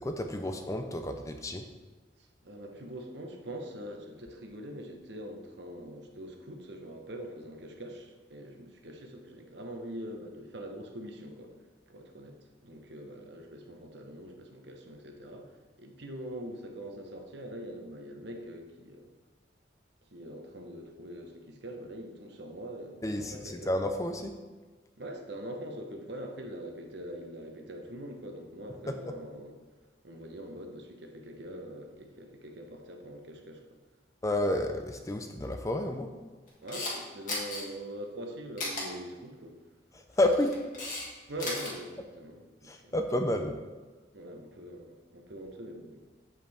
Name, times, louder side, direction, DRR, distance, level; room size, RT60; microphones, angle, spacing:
voice 1, 0.0-1.7 23.0-24.4 28.9-29.0 34.2-36.1 39.9-41.0 42.6-43.6, left 1 dB, 15° left, 5 dB, 0.5 m, -31 dB
voice 2, 2.2-11.5 11.9-19.1 20.1-23.7 25.0-29.5 30.0-33.6 36.6-39.6 41.3-43.0 44.1-46.1, right 1 dB, 65° right, 3 dB, 1.1 m, -43 dB
Camera, 36.5-36.9 37.3-37.6 38.6-38.8 40.1-41.0 41.3-41.7, left 2 dB, 45° left, 2.1 m, -35 dB
8.0 x 7.5 x 3.5 m, 1.3 s
head